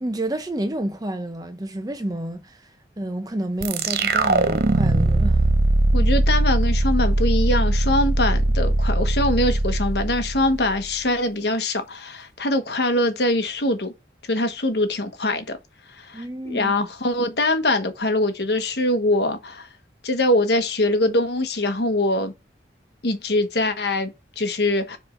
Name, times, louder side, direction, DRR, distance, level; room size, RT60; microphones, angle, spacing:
voice 1, 0.0-2.7 3.0-5.4 16.1-16.7, right 1 dB, 20° right, 0.8 m, -29 dB
sound 1, 3.6-10.9, right 2 dB, 55° right, 0.7 m, -20 dB
voice 2, 5.9-13.9 14.3-15.6 15.9-16.2 16.5-19.7 20.0-22.3 23.0-25.0, left 1 dB, 65° left, 1.2 m, -23 dB
5.2 x 4.5 x 5.1 m
head